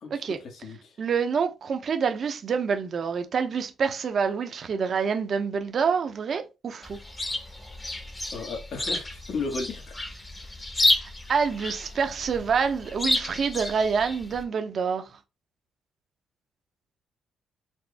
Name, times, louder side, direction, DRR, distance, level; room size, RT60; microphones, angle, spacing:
voice 1, 0.0-1.0 8.3-10.0, left 4 dB, 60° left, 1.1 m, -35 dB
voice 2, 1.0-7.0 10.8-15.2, right 6 dB, 50° right, 0.6 m, -27 dB
Chirp tweet, 6.8-14.4, left 1 dB, 20° left, 0.9 m, -30 dB
4.2 x 2.0 x 3.3 m
cardioid pair, 90°, 0 cm